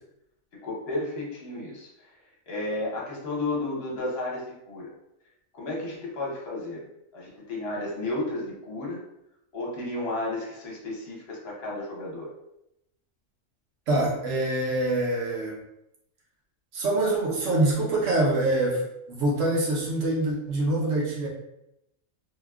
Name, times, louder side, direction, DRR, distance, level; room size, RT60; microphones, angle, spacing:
voice 1, 0.5-1.9 2.5-4.9 5.5-6.9 7.1-9.0 9.5-12.3, left 2 dB, 50° left, -3 dB, 1.1 m, -32 dB
voice 2, 13.9-15.6 16.7-21.3, right 2 dB, 70° right, -3 dB, 1.2 m, -25 dB
3.5 x 2.2 x 2.3 m, 0.83 s
omnidirectional pair, 1.4 m